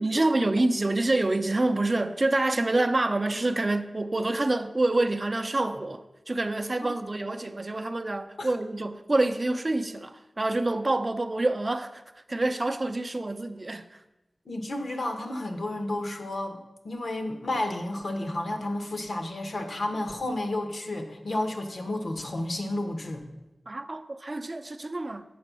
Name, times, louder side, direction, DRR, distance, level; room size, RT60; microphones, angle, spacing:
voice 1, 0.0-12.0 12.3-13.9 23.7-25.2, right 2 dB, 35° right, 0.5 m, -27 dB
voice 2, 14.5-16.6 16.8-23.2, left 1 dB, 70° left, 1.1 m, -31 dB
8.5 x 4.5 x 6.1 m
wide cardioid pair, 70°, 0 cm